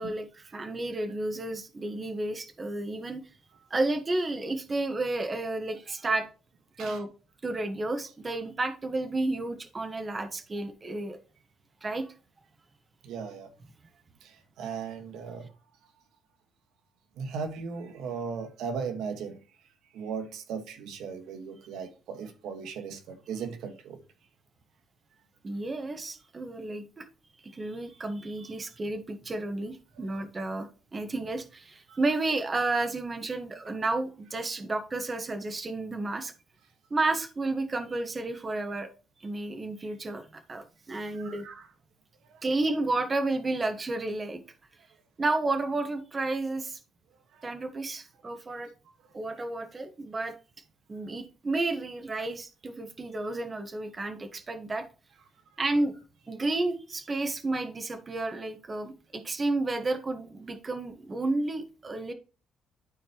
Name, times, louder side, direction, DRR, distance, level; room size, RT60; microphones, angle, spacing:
voice 1, 0.0-3.2 3.7-6.3 6.8-7.1 7.4-11.2 11.8-12.1 25.4-27.1 27.4-36.3 36.9-38.9 39.2-41.4 42.4-44.4 45.2-46.8 47.4-48.7 49.1-50.3 50.9-54.9 55.6-55.9 56.3-62.1, right 2 dB, 25° right, 1.2 m, -31 dB
voice 2, 13.0-13.5 14.2-15.5 17.1-19.4 19.9-24.0 29.9-30.1 31.9-32.0 41.1-41.7 42.2-42.5 47.3-47.5 49.0-49.1, right 6 dB, 90° right, 1.4 m, -38 dB
12.5 x 4.4 x 2.9 m
cardioid pair, 150°, 0 cm